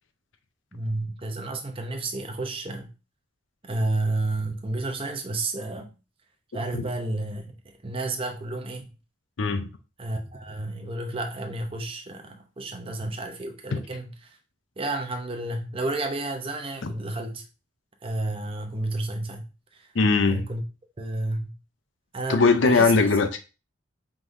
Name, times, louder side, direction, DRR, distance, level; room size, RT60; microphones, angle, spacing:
voice 1, 0.7-2.9 3.6-5.9 6.5-8.9 10.0-14.4 14.8-17.4 18.0-19.9 20.3-20.6 21.0-21.5 22.1-22.9, right 2 dB, 30° right, 0.7 m, -31 dB
voice 2, 9.4-9.7 13.7-13.8 16.8-16.9 19.9-20.4 22.3-23.4, left 4 dB, 80° left, 0.6 m, -20 dB
4.7 x 3.7 x 2.6 m
head